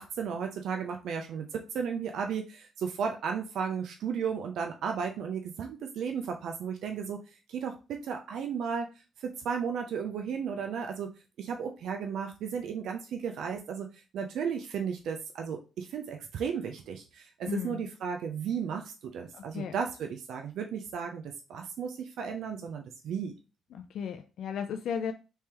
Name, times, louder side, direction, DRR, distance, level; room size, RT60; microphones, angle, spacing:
voice 1, 0.0-7.2 7.5-8.9 9.2-11.1 11.4-13.9 14.1-23.3, right 6 dB, 75° right, 0.4 m, -34 dB
voice 2, 17.5-17.9 19.3-19.7 23.7-25.1, left 7 dB, 70° left, 0.3 m, -35 dB
3.3 x 3.3 x 2.9 m
cardioid pair, 90°, 0 cm